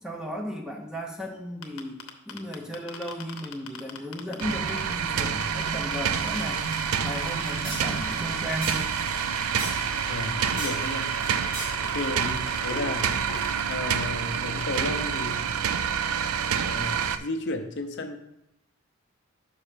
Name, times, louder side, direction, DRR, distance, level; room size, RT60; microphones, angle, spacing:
voice 1, 0.0-6.6 7.0-8.9 12.1-12.5, equal, 5° right, 2 dB, 0.7 m, -35 dB
sound 1, 1.6-4.9 5.2-13.0 13.3-13.7 14.0-14.1 14.3-15.0, left 7 dB, 85° left, 0.8 m, -41 dB
sound 2, 4.4-17.2, right 7 dB, 80° right, 0.4 m, -28 dB
sound 3, 6.2-13.8, right 1 dB, 40° right, 2.3 m, -41 dB
voice 2, 10.1-11.1 11.9-12.3 12.6-13.2 13.7-15.5 16.5-18.2, left 2 dB, 55° left, 5 dB, 0.6 m, -33 dB
5.6 x 5.5 x 5.0 m, 0.84 s
head